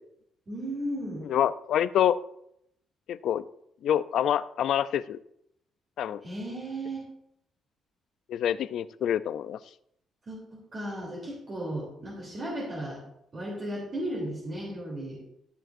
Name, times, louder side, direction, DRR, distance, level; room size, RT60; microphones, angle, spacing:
voice 1, 0.5-1.2 6.2-7.0 10.3-13.0 13.3-15.2, right 1 dB, 40° right, -4 dB, 3.1 m, -35 dB
voice 2, 1.3-2.2 3.1-3.4 3.8-5.2 6.0-6.2 8.3-9.6, left 10 dB, 75° left, 15 dB, 0.4 m, -26 dB
15.5 x 7.6 x 2.6 m, 0.76 s
cardioid pair, 90°, 0 cm